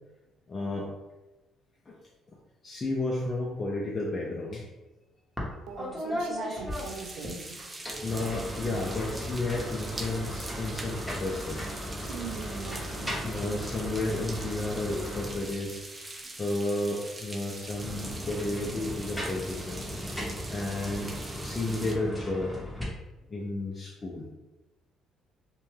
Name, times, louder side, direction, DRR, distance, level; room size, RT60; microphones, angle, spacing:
voice 1, 0.5-0.9 1.9-2.0 2.6-4.6 8.0-11.7 13.2-15.8 16.4-19.8 20.5-21.1 21.4-22.5 23.3-24.3, left 2 dB, 30° left, -3 dB, 0.5 m, -32 dB
sound 1, 5.4-5.5 5.8-7.3 7.7-15.8 17.6-22.8, equal, ahead, 0.8 m, -37 dB
voice 2, 5.7-7.7 12.1-13.3, right 5 dB, 80° right, 3 dB, 0.4 m, -40 dB
sound 2, 6.7-21.9, right 2 dB, 25° right, 0.4 m, -43 dB
2.6 x 2.2 x 3.2 m, 1.1 s
supercardioid pair, 80°, 0 cm